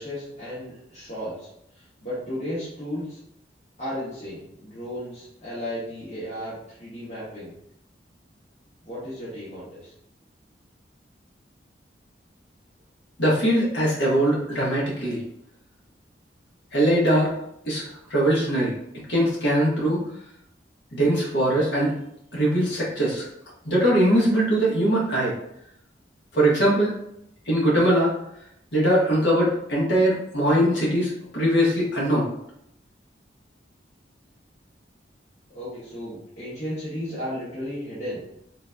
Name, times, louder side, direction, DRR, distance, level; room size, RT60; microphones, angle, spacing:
voice 1, 0.0-1.5 1.7-3.2 3.8-7.5 8.8-9.9 35.5-38.2, equal, 35° left, -11 dB, 1.1 m, -34 dB
voice 2, 13.2-15.2 16.7-17.3 17.6-18.7 19.1-20.0 20.9-21.9 22.3-23.3 23.6-25.3 26.3-26.9 27.4-28.1 28.7-32.3, right 1 dB, 75° left, -5 dB, 1.3 m, -21 dB
3.9 x 2.6 x 2.2 m, 0.76 s
head